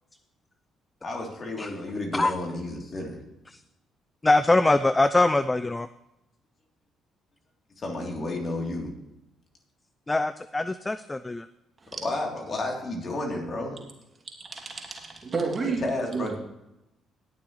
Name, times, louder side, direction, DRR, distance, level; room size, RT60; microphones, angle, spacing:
voice 1, 1.0-3.2 7.8-8.9 12.0-13.8 15.6-16.4, left 2 dB, 45° left, 3.2 m, -31 dB
voice 2, 4.2-5.9 10.1-11.5, left 2 dB, 20° left, 0.4 m, -23 dB
voice 3, 14.5-16.4, right 4 dB, 40° right, 2.6 m, -31 dB
19.5 x 6.9 x 3.2 m
hypercardioid pair, 50°, 0 cm